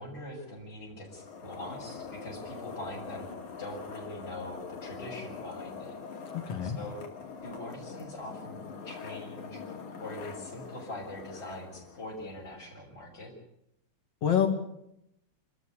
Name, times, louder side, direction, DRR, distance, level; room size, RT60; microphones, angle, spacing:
voice 1, 0.0-3.3 3.6-6.0 6.6-7.0 7.4-13.3, left 1 dB, 20° left, -6 dB, 6.0 m, -43 dB
sound 1, 1.0-12.6, left 5 dB, 80° left, 3.9 m, -43 dB
voice 2, 6.3-6.8 14.2-14.5, left 8 dB, 55° left, 5 dB, 3.6 m, -26 dB
28.0 x 13.5 x 8.4 m, 0.80 s
omnidirectional pair, 3.4 m